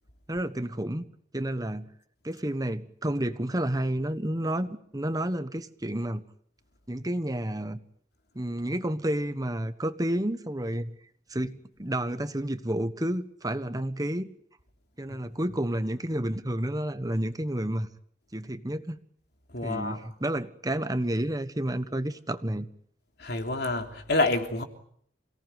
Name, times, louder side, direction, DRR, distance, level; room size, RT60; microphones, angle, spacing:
voice 1, 0.3-1.0 1.3-1.9 2.2-4.7 4.9-6.2 6.9-7.8 8.3-11.0 11.3-14.3 15.0-17.9 18.3-19.0 19.6-22.7, right 1 dB, 20° right, 1.3 m, -30 dB
voice 2, 19.5-20.0 23.2-24.6, left 2 dB, 65° left, 3.4 m, -27 dB
28.5 x 18.0 x 9.4 m
head